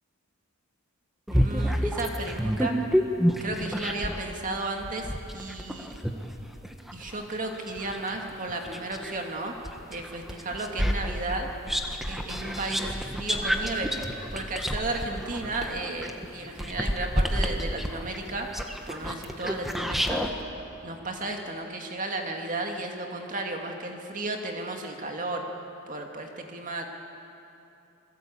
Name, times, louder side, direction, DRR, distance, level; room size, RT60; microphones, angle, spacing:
sound 1, 1.3-4.3 4.8-9.2 9.6-20.3, equal, ahead, 1.5 m, -29 dB
voice 1, 1.3-2.8 3.4-6.0 6.9-9.5 9.9-11.5 12.1-14.0 14.3-18.5 18.9-20.2 20.8-25.4 25.9-26.9, right 2 dB, 40° right, 2 dB, 2.3 m, -34 dB
27.0 x 21.5 x 8.7 m, 2.8 s
head